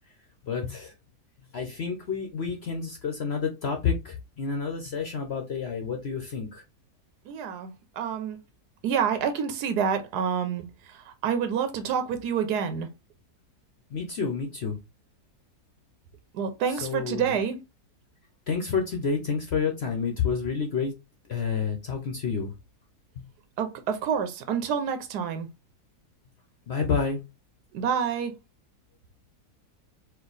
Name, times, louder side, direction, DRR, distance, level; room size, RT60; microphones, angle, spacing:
voice 1, 0.4-0.9 1.5-6.6 13.9-14.8 16.7-17.4 18.5-20.9 21.3-22.5 23.2-23.3 26.7-27.2, left 5 dB, 55° left, 0.8 m, -29 dB
voice 2, 7.3-8.4 8.8-12.9 16.3-17.6 23.6-25.5 27.7-28.3, right 7 dB, 85° right, 1.3 m, -28 dB
4.5 x 2.4 x 3.9 m
omnidirectional pair, 1.7 m